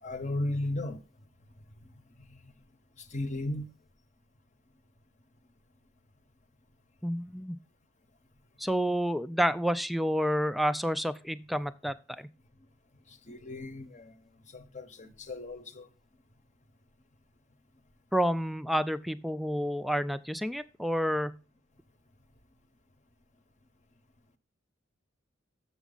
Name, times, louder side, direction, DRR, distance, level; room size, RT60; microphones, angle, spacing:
voice 1, 0.0-1.0 2.2-2.5 3.0-3.7 13.1-14.2 14.5-15.9, left 1 dB, 40° left, 0.8 m, -36 dB
voice 2, 7.0-7.6 8.6-12.3 18.1-21.4, equal, ahead, 0.4 m, -29 dB
7.2 x 7.1 x 3.8 m
head